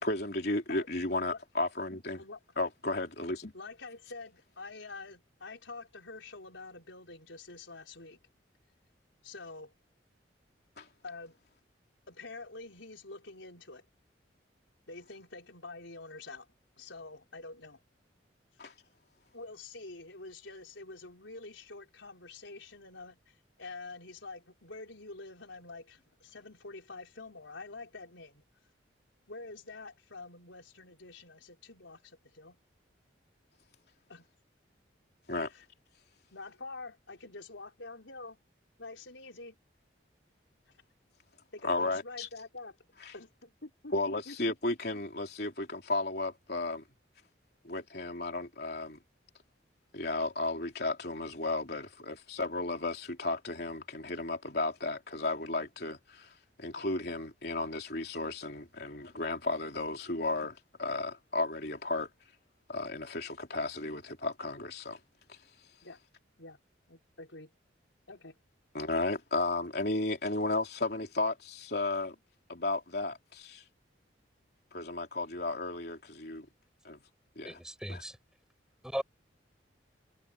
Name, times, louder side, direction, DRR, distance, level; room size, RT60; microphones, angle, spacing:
voice 1, 0.0-2.2 2.6-3.5 10.8-10.9 18.6-18.7 35.3-35.5 41.6-42.3 43.0-43.1 43.9-46.8 47.6-49.0 49.9-56.3 56.6-62.1 62.7-65.0 65.3-65.4 68.7-72.2 72.5-73.6 74.7-76.5 76.8-77.0 77.4-77.6 77.9-78.0, left 2 dB, 55° left, 3.5 m, -34 dB
voice 2, 3.5-8.2 9.2-9.7 11.0-11.4 12.1-13.8 14.9-16.5 16.8-17.8 19.3-28.4 29.3-32.6 34.1-34.3 35.5-35.6 36.3-38.4 38.8-39.6 41.5-42.8 43.1-44.4 56.7-56.9 65.8-66.0 66.4-66.6 66.9-67.5 68.1-68.4, left 3 dB, 80° left, 4.5 m, -47 dB
voice 3, 77.4-78.2 78.8-79.0, equal, 5° right, 5.9 m, -37 dB
head